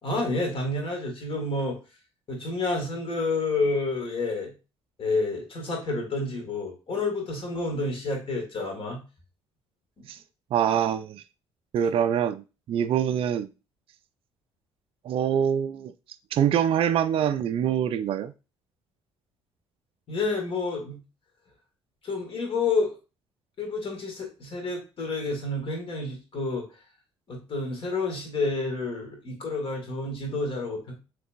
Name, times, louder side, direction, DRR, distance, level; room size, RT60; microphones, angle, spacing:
voice 1, 0.0-1.8 2.3-4.5 5.0-9.0 10.0-10.1 20.1-21.0 22.0-22.9 23.6-26.7 27.3-30.9, left 3 dB, 40° left, 2.0 m, -29 dB
voice 2, 10.5-11.2 11.7-13.5 15.0-15.9 16.3-18.3, right 9 dB, 40° right, 0.4 m, -25 dB
6.4 x 3.3 x 2.5 m
figure-of-eight pair, 50°, 14 cm